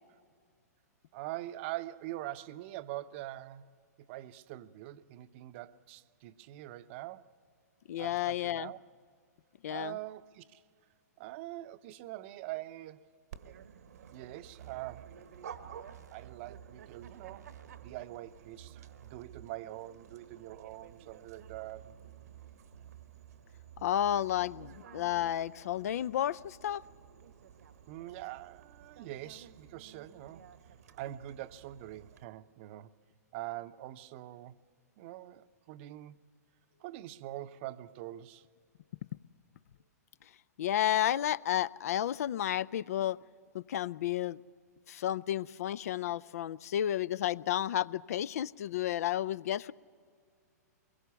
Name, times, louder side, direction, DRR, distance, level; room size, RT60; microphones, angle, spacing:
voice 1, 1.1-3.7 4.0-7.3 8.0-8.8 9.7-10.6 11.2-13.1 14.1-15.1 16.1-17.5 17.8-22.0 27.9-30.5 31.0-32.9 33.3-34.5 35.0-36.2 36.8-38.5, right 15 dB, 45° right, 0.7 m, -44 dB
voice 2, 7.9-8.7 9.6-10.0 23.8-26.8 40.6-43.2 43.5-44.4 44.9-49.7, left 11 dB, 65° left, 0.5 m, -32 dB
Dog, 13.3-32.2, right 8 dB, 70° right, 1.1 m, -54 dB
sound 1, 14.6-18.1 18.5-19.5 21.1-25.6, right 12 dB, 90° right, 1.1 m, -54 dB
23.5 x 21.5 x 6.9 m
hypercardioid pair, 115°, 9 cm